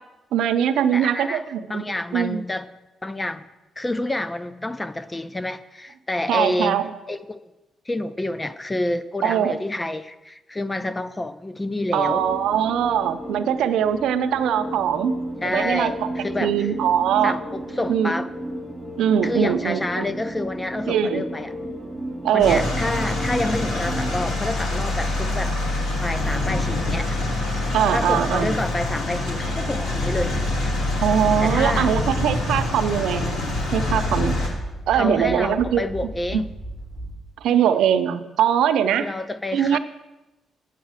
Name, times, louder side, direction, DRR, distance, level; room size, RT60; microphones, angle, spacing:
voice 1, 0.3-1.8 2.1-2.4 6.3-6.9 9.2-9.6 11.9-15.1 15.5-16.1 16.4-17.4 17.9-18.1 19.0-20.1 20.9-21.2 22.2-22.6 27.7-28.6 31.0-33.3 33.7-34.5 34.9-35.8 36.3-36.4 37.4-39.1 39.5-39.8, right 9 dB, 85° right, 9 dB, 0.7 m, -21 dB
voice 2, 0.9-1.4 1.7-2.7 3.0-3.4 3.8-7.4 7.9-12.2 15.4-16.7 17.2-18.3 19.2-21.5 22.3-27.2 27.9-30.4 31.4-31.9 34.9-36.5 39.0-39.8, left 2 dB, 15° left, 13 dB, 0.5 m, -28 dB
sound 1, 12.0-24.3, right 1 dB, 5° right, 2.7 m, -33 dB
sound 2, 22.4-34.5, left 2 dB, 75° left, 2.6 m, -25 dB
sound 3, 31.6-37.5, right 1 dB, 35° left, 4.4 m, -36 dB
9.1 x 8.2 x 6.4 m, 1.0 s
cardioid pair, 105°, 0 cm